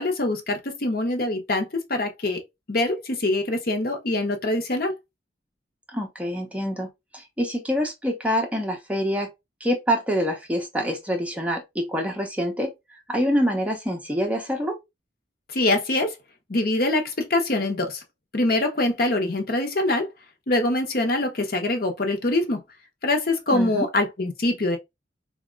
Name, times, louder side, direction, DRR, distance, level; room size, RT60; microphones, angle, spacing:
voice 1, 0.0-2.4 2.7-4.9 15.5-16.1 16.5-18.0 18.3-20.1 20.5-22.6 23.0-24.8, left 2 dB, 50° left, 0.8 m, -24 dB
voice 2, 5.9-9.3 9.6-12.7 13.1-14.8 23.5-23.8, equal, 5° right, 0.5 m, -26 dB
4.0 x 2.2 x 2.4 m
head